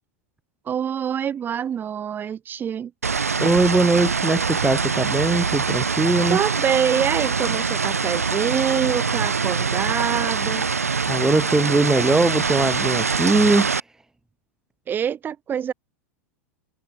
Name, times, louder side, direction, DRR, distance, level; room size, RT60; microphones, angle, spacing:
voice 1, 0.7-2.9 6.3-10.7 14.9-15.7, right 8 dB, 25° right, 2.0 m, -25 dB
sound 1, 3.0-13.8, right 5 dB, 80° right, 0.8 m, -24 dB
voice 2, 3.4-6.4 11.1-13.8, right 2 dB, 5° right, 0.5 m, -20 dB
figure-of-eight pair, 90°, 8 cm